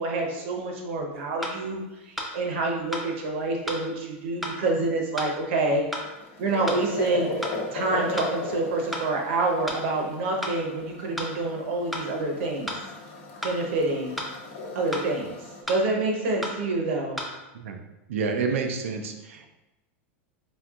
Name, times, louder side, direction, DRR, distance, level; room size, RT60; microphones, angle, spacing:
voice 1, 0.0-5.8 6.4-7.3 7.7-12.8 13.4-14.1 14.7-15.4 15.7-17.2, right 2 dB, 65° right, 1 dB, 0.9 m, -27 dB
sound 1, 0.8-0.9 1.4-1.6 2.2-2.3 2.9-3.1 3.7-3.8 4.4-4.6 5.2-5.3 5.9-6.1 6.7-6.8 7.4-7.6 8.2-8.3 8.9-9.1 9.7-9.8 10.4-10.6 11.2-11.3 11.9-12.1 12.7-12.8 13.4-13.6 14.2-14.3 14.9-15.1 15.7-15.8 16.4-16.6 17.2-17.3, equal, ahead, 0.5 m, -32 dB
sound 2, 5.8-15.6, left 2 dB, 75° left, 0.8 m, -36 dB
voice 2, 18.1-19.5, right 5 dB, 85° right, 5 dB, 0.5 m, -28 dB
4.4 x 3.3 x 2.4 m, 1.0 s
supercardioid pair, 150°, 7 cm